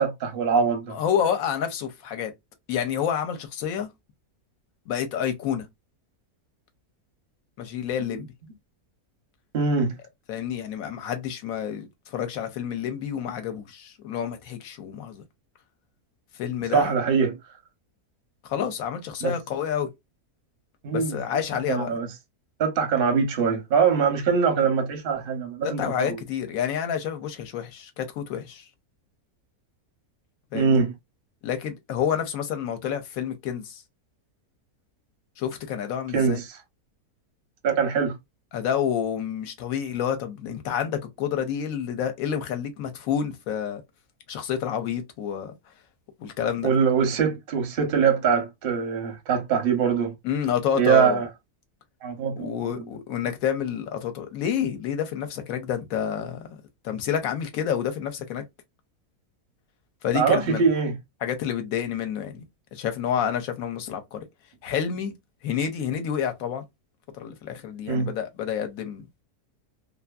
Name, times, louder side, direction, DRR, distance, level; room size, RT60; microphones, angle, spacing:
voice 1, 0.0-0.9 9.5-10.0 16.7-17.4 19.2-19.3 20.8-21.4 21.7-22.1 22.6-26.2 30.5-30.9 36.1-36.5 37.6-38.2 46.6-50.1 50.8-51.3 52.0-52.8 60.1-60.9 67.9-68.1, right 6 dB, 55° right, 0.6 m, -23 dB
voice 2, 0.9-2.3 2.7-3.9 4.9-5.7 7.6-8.3 10.3-15.2 16.4-16.9 18.4-19.9 20.9-22.0 25.6-28.6 30.5-30.8 31.4-33.8 35.4-36.4 38.5-43.8 44.3-45.5 46.2-46.7 50.2-51.2 52.4-56.6 56.8-58.4 60.0-60.6 61.2-62.4 62.7-64.2 64.6-65.1 65.4-66.6 67.1-69.1, left 8 dB, 70° left, 1.0 m, -29 dB
2.6 x 2.5 x 2.2 m
omnidirectional pair, 1.6 m